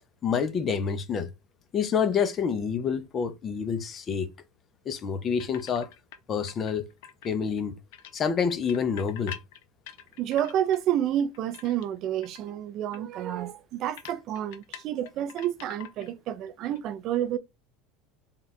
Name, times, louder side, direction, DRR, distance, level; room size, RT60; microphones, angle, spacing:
voice 1, 0.2-1.3 1.7-4.3 4.9-5.9 6.3-6.8 7.2-7.7 8.1-9.3, left 6 dB, 25° left, 0.5 m, -27 dB
sound 1, 5.4-6.2 6.5-7.6 7.9-10.8 11.2-12.0 12.2-12.5 12.9-13.0 13.3-13.4 14.0-16.2 16.5-16.8, left 10 dB, 75° left, 0.6 m, -45 dB
voice 2, 10.2-17.4, right 11 dB, 40° right, 0.3 m, -29 dB
3.7 x 2.3 x 4.0 m
supercardioid pair, 160°, 0 cm